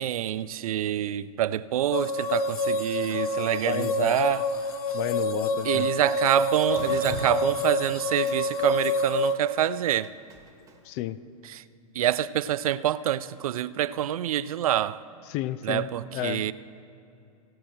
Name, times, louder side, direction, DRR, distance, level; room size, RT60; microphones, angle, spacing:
voice 1, 0.0-4.4 5.6-10.1 11.5-11.6 12.0-15.0 15.6-16.5, right 12 dB, 70° right, 16 dB, 0.4 m, -26 dB
sound 1, 1.9-9.3, left 2 dB, 80° left, 0.9 m, -27 dB
voice 2, 3.6-4.2 4.9-5.9 10.8-11.2 15.3-16.5, left 13 dB, 40° left, 15 dB, 0.4 m, -31 dB
Drip, 6.6-10.7, right 2 dB, 15° right, 1.4 m, -40 dB
17.0 x 7.5 x 4.4 m, 2.6 s
hypercardioid pair, 115°, 19 cm